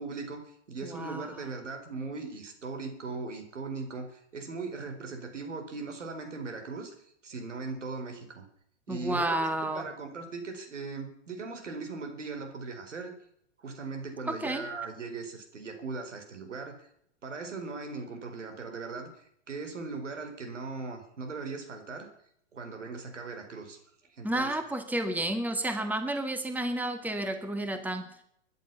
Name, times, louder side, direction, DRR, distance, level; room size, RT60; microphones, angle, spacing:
voice 1, 0.0-6.9 7.2-8.5 8.9-9.5 9.7-13.2 13.6-16.9 17.2-22.1 22.5-23.8 24.1-24.5, right 4 dB, 85° right, 5 dB, 4.8 m, -39 dB
voice 2, 0.8-1.3 8.9-9.9 14.3-14.7 24.2-28.1, right 1 dB, 5° right, 7 dB, 1.9 m, -31 dB
22.0 x 11.0 x 5.9 m, 0.70 s
hypercardioid pair, 110°, 36 cm